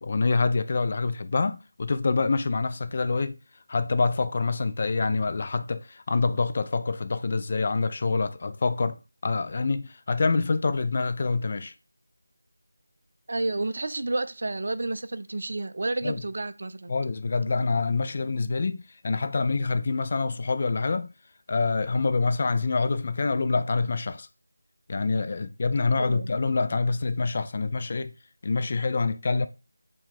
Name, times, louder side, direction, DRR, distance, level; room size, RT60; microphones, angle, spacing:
voice 1, 0.0-3.4 3.7-11.7 16.0-16.2 16.9-21.1 21.5-24.3 24.9-28.1 28.4-29.5, left 4 dB, 35° left, 0.3 m, -26 dB
voice 2, 13.3-16.9 26.0-26.3, right 2 dB, 50° right, 0.4 m, -30 dB
4.6 x 2.3 x 3.7 m
figure-of-eight pair, 165°, 0 cm